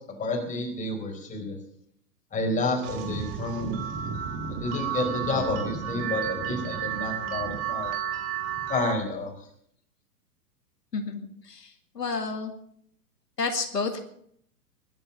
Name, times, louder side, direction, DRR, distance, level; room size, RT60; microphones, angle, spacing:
voice 1, 0.2-1.6 2.3-3.8 4.5-7.9 8.7-9.3, left 2 dB, 15° left, 1 dB, 4.3 m, -30 dB
sound 1, 2.8-8.9, right 8 dB, 30° right, 1.9 m, -32 dB
voice 2, 10.9-11.7 12.0-12.5 13.4-14.0, left 4 dB, 80° left, 5 dB, 2.2 m, -30 dB
21.0 x 9.0 x 7.2 m, 0.68 s
figure-of-eight pair, 110°, 48 cm